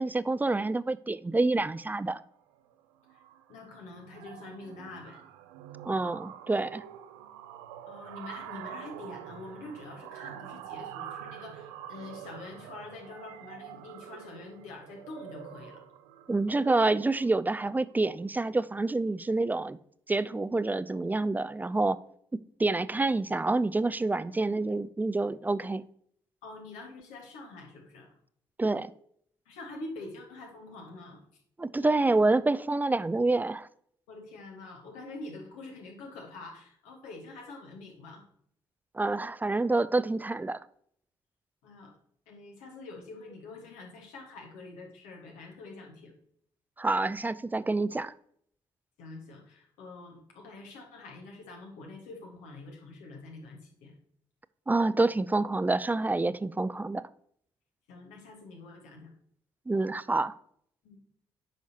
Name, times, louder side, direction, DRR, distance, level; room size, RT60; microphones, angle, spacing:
voice 1, 0.0-2.2 5.9-6.8 16.3-19.8 20.1-22.0 22.3-25.8 28.6-28.9 31.6-33.7 38.9-40.6 46.8-48.1 54.7-57.0 59.7-60.4, right 2 dB, 15° right, 0.3 m, -27 dB
sound 1, 2.2-2.3 2.5-2.8 3.1-17.9, right 10 dB, 80° right, 0.4 m, -46 dB
voice 2, 3.5-5.2 7.9-15.8 26.4-28.1 29.4-31.2 34.1-38.2 41.6-41.9 42.3-46.2 49.0-54.0 57.9-59.1 60.8-61.0, left 3 dB, 75° left, 1.6 m, -46 dB
8.9 x 5.7 x 2.8 m
hypercardioid pair, 45°, 13 cm